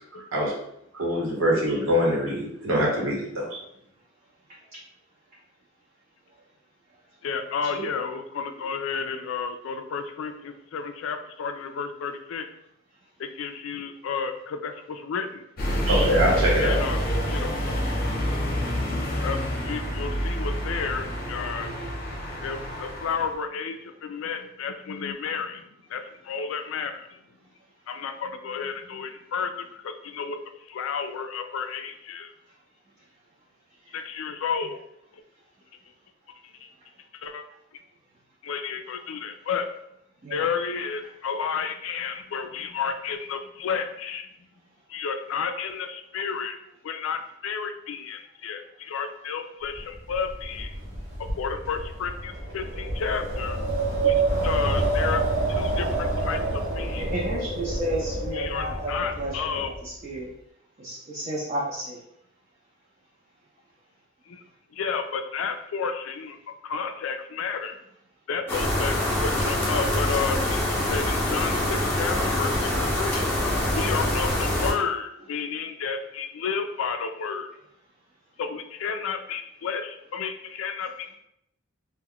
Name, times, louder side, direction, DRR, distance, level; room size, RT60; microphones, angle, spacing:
voice 1, 0.9-3.6 15.9-16.8, equal, 85° right, -3 dB, 0.9 m, -23 dB
voice 2, 7.2-12.5 13.2-15.4 16.6-17.5 19.2-21.8 22.4-27.2 27.9-32.3 33.9-34.8 35.1-35.2 36.4-36.7 37.2-37.4 38.4-39.7 40.3-44.3 44.9-46.6 46.8-50.8 51.4-53.6 54.0-55.2 55.5-57.1 58.3-59.7 64.3-64.4 64.7-66.4 66.6-67.8 68.3-73.3 73.7-77.5 78.4-81.2, left 6 dB, 80° left, 7 dB, 0.3 m, -32 dB
sound 1, 15.6-23.4, equal, 50° left, 0.7 m, -28 dB
Wind, 49.7-59.8, right 2 dB, 55° right, 1.1 m, -28 dB
voice 3, 57.0-60.3 60.8-62.0, right 1 dB, 35° right, -5 dB, 0.5 m, -32 dB
sound 2, 68.5-74.7, left 1 dB, 10° left, 0.6 m, -25 dB
2.2 x 2.1 x 3.5 m, 0.76 s
head